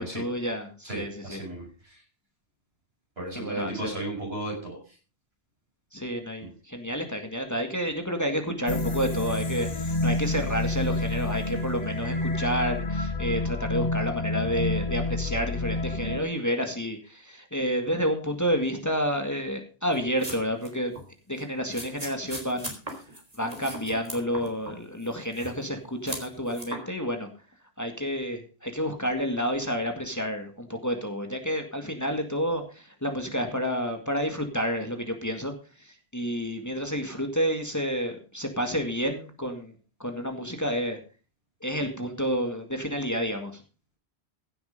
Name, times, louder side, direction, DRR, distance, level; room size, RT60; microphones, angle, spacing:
voice 1, 0.0-1.4 3.3-3.9 5.9-20.9 21.3-22.8 23.4-27.3 27.8-35.5 35.8-39.7 40.0-41.0 41.6-43.6, equal, 15° left, 4 dB, 2.0 m, -30 dB
voice 2, 0.8-2.0 3.2-4.8 6.4-6.5, right 1 dB, 75° right, -1 dB, 7.6 m, -35 dB
sound 1, 8.7-16.2, left 2 dB, 40° left, 1.3 m, -29 dB
sound 2, 19.9-20.7 20.9-21.1 21.7-24.7 25.0-25.7 26.1-26.8, right 1 dB, 40° right, 3.6 m, -38 dB
16.0 x 7.9 x 5.3 m, 0.36 s
omnidirectional pair, 1.1 m